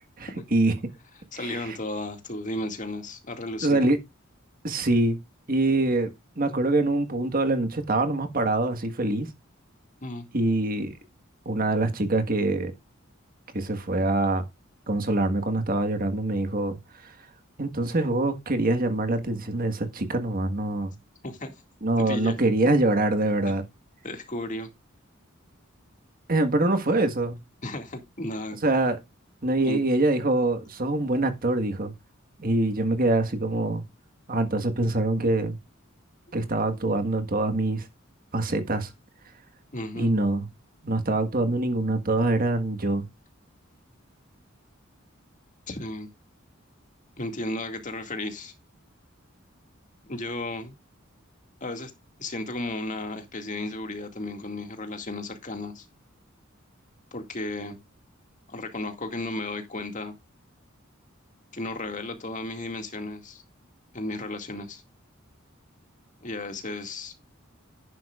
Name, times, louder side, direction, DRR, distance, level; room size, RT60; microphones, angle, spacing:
voice 1, 0.2-0.7 1.3-1.8 3.6-4.0 4.6-5.2 5.5-9.3 10.3-11.0 11.5-12.7 13.5-14.4 14.9-17.2 17.6-20.9 21.8-23.6 26.3-27.4 28.6-29.0 29.4-31.9 32.4-33.8 34.3-35.6 36.3-37.9 38.3-38.9 39.9-40.5 40.8-43.0, right 2 dB, 45° right, 1.6 m, -24 dB
voice 2, 1.3-3.8 10.0-10.2 21.2-21.5 22.1-22.3 24.0-24.7 27.6-28.6 29.6-29.8 39.7-40.1 45.7-46.1 47.2-48.5 50.1-50.7 51.6-51.9 52.2-55.9 57.1-57.8 58.5-60.1 61.5-63.4 63.9-64.8 66.2-67.1, left 2 dB, 40° left, 2.1 m, -34 dB
11.0 x 9.8 x 2.4 m
head